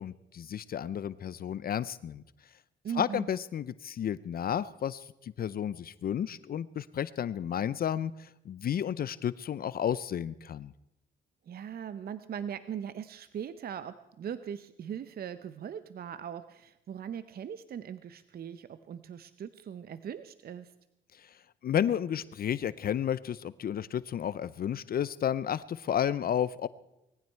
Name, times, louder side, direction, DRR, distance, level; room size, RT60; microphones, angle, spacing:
voice 1, 0.0-2.2 3.0-10.7 21.6-26.7, left 9 dB, 50° left, 17 dB, 0.5 m, -32 dB
voice 2, 2.8-3.3 11.5-20.7, right 8 dB, 50° right, 13 dB, 0.7 m, -40 dB
19.5 x 15.0 x 4.5 m, 0.90 s
cardioid pair, 90°, 20 cm